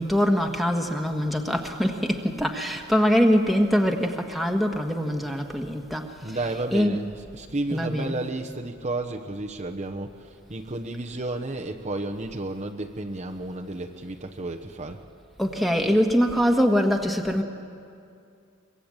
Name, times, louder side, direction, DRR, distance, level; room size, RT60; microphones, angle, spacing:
voice 1, 0.0-7.0 7.7-8.2 15.4-17.4, equal, ahead, 2 dB, 1.7 m, -23 dB
voice 2, 6.2-15.0, right 2 dB, 35° right, 1 dB, 1.0 m, -32 dB
24.0 x 22.0 x 8.9 m, 2.4 s
head